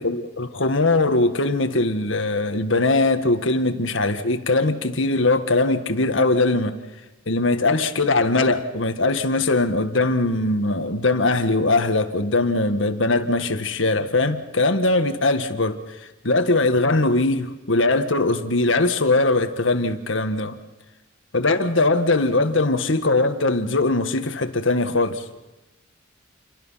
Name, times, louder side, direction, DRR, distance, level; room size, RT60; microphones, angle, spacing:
voice 1, 0.0-6.8 7.3-20.6 21.3-25.3, left 2 dB, 80° left, 1.8 m, -21 dB
28.5 x 23.5 x 5.8 m
head